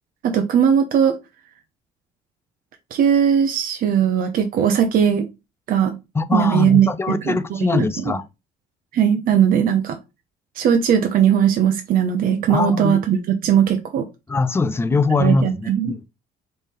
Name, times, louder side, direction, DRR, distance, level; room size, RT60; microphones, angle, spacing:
voice 1, 0.2-1.2 2.9-5.3 5.7-6.0 6.3-7.3 7.7-8.1 8.9-10.0 10.6-14.0 15.2-15.9, right 8 dB, 60° right, 0.7 m, -18 dB
voice 2, 6.1-8.2 12.5-13.0 14.3-16.0, left 3 dB, 15° left, 0.4 m, -22 dB
3.6 x 3.3 x 4.2 m
cardioid pair, 110°, 17 cm